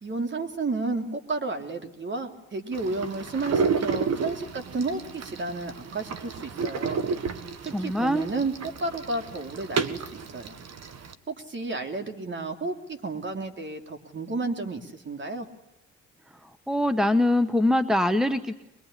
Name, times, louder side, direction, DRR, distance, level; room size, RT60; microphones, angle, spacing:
voice 1, 0.0-7.0 7.6-10.5 11.3-15.5, right 3 dB, 40° right, 5 dB, 3.2 m, -32 dB
sound 1, 2.7-11.1, right 5 dB, 60° right, 1.8 m, -31 dB
voice 2, 7.7-8.3 16.7-18.5, left 1 dB, ahead, 11 dB, 1.2 m, -23 dB
22.5 x 22.5 x 10.0 m, 0.88 s
cardioid pair, 90°, 30 cm